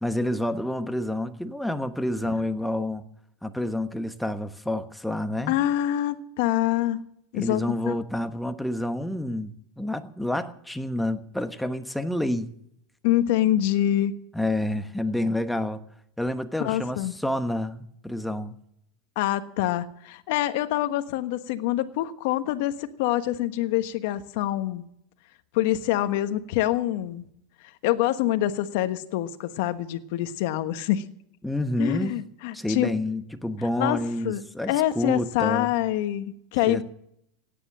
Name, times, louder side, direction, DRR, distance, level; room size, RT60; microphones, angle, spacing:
voice 1, 0.0-3.0 3.4-5.5 7.3-12.5 14.3-15.8 16.2-18.6 31.4-32.2 32.5-35.7 36.7-36.8, left 1 dB, 5° left, 1.2 m, -28 dB
voice 2, 5.5-7.0 7.3-7.9 13.0-14.2 16.6-17.1 19.2-24.8 25.5-27.2 27.6-31.0 31.8-32.9 33.8-34.4 34.7-36.8, left 13 dB, 65° left, 1.3 m, -25 dB
17.0 x 10.0 x 7.4 m
supercardioid pair, 120°, 0 cm